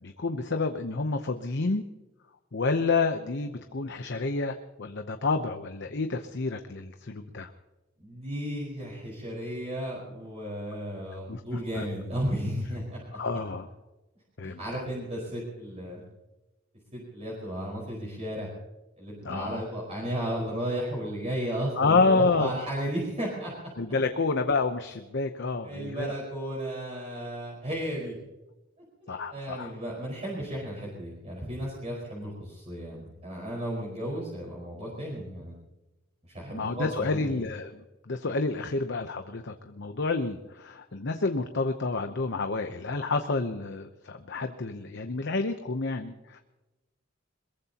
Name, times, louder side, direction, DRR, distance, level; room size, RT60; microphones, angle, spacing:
voice 1, 0.0-1.8 2.5-7.5 11.3-11.8 13.1-13.7 14.4-14.6 19.2-19.6 21.8-22.5 23.8-26.1 29.1-29.7 36.5-37.8 38.1-46.4, left 3 dB, 60° left, 7 dB, 0.9 m, -29 dB
voice 2, 8.0-13.2 14.4-16.0 16.9-18.5 19.0-23.5 25.6-28.1 29.0-35.5 36.3-37.3, equal, 35° right, -4 dB, 5.0 m, -34 dB
22.5 x 22.0 x 2.9 m, 1.1 s
head